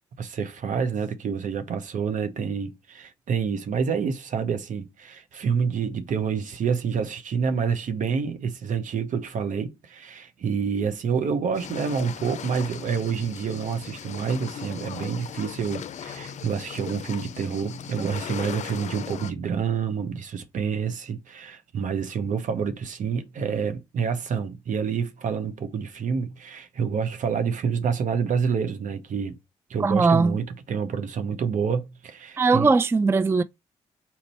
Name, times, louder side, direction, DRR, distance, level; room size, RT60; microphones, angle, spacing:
voice 1, 0.2-29.4 29.7-32.7, right 6 dB, 60° right, 0.9 m, -28 dB
sound 1, 11.5-19.3, left 8 dB, 55° left, 0.5 m, -38 dB
voice 2, 29.8-30.4 32.4-33.4, right 4 dB, 15° right, 0.3 m, -19 dB
4.2 x 2.6 x 4.2 m
hypercardioid pair, 45°, 15 cm